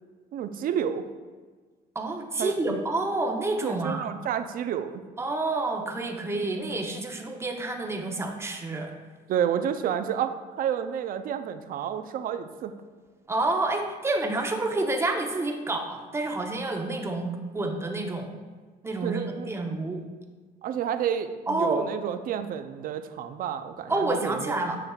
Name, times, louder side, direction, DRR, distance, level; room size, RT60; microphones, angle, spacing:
voice 1, 0.3-1.1 2.4-2.8 3.6-5.0 9.3-12.7 19.0-19.5 20.6-24.6, right 9 dB, 55° right, 9 dB, 0.5 m, -30 dB
voice 2, 1.9-4.0 5.2-8.9 13.3-18.3 18.8-20.0 21.5-21.9 23.9-24.8, right 2 dB, 15° right, 2 dB, 0.8 m, -28 dB
7.8 x 6.2 x 2.3 m, 1.4 s
cardioid pair, 110°, 17 cm